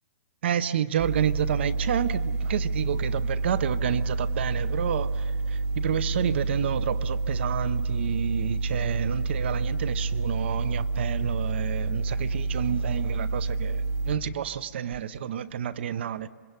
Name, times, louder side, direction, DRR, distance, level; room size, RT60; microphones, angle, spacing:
voice 1, 0.4-16.3, right 9 dB, 40° right, 0.6 m, -29 dB
sound 1, 1.0-14.1, right 3 dB, 25° right, 1.8 m, -28 dB
26.5 x 22.5 x 8.1 m
hypercardioid pair, 180°, 9 cm